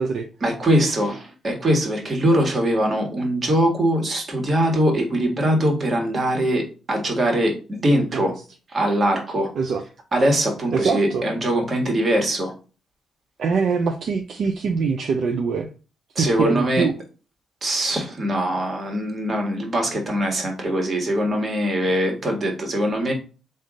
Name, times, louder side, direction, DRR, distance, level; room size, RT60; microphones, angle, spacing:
voice 1, 0.4-8.3 8.7-9.5 10.1-12.5 16.1-16.8 17.6-23.1, right 1 dB, 45° right, 2 dB, 1.5 m, -22 dB
voice 2, 10.7-11.2 13.4-15.7 16.2-16.9, right 5 dB, 65° right, 5 dB, 0.4 m, -23 dB
3.6 x 2.6 x 3.6 m, 0.34 s
supercardioid pair, 60°, 0 cm